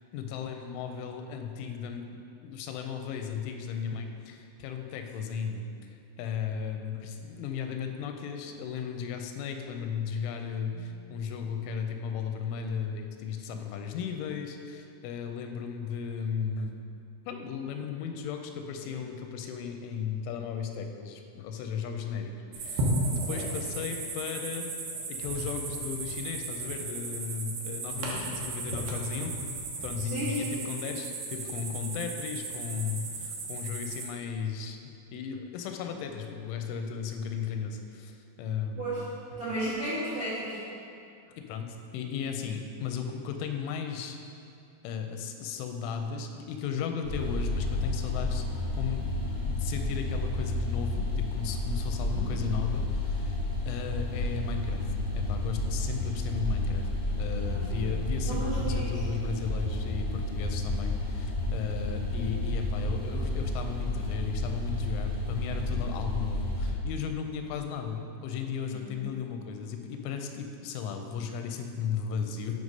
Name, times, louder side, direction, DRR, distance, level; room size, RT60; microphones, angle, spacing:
voice 1, 0.1-5.7 6.2-16.8 17.3-24.7 25.1-29.3 29.8-34.8 35.1-39.4 41.4-44.2 44.8-54.8 55.1-56.9 57.2-72.6, left 6 dB, 90° left, 5 dB, 3.0 m, -35 dB
sound 1, 22.5-34.0, right 2 dB, 90° right, 1.9 m, -35 dB
voice 2, 30.1-30.5 38.7-39.0 39.4-40.6 52.0-52.3 57.4-57.8 58.2-58.9 68.8-69.0, right 1 dB, 70° right, -12 dB, 1.2 m, -34 dB
sound 2, 47.0-66.7, left 2 dB, 60° left, 1.3 m, -31 dB
8.9 x 3.2 x 5.2 m, 2.5 s
omnidirectional pair, 5.4 m